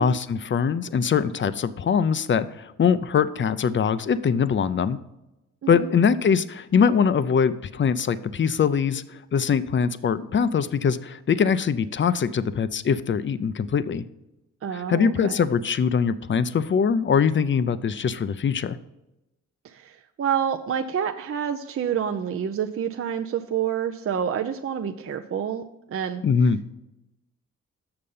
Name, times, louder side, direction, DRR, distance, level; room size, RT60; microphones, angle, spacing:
voice 1, 0.0-5.0 5.7-14.0 14.9-18.8 26.2-26.6, left 6 dB, 40° left, 15 dB, 0.6 m, -22 dB
voice 2, 14.6-15.5 19.6-25.6 25.9-26.2, right 8 dB, 45° right, 5 dB, 0.6 m, -28 dB
6.8 x 6.5 x 5.5 m, 0.96 s
cardioid pair, 60°, 31 cm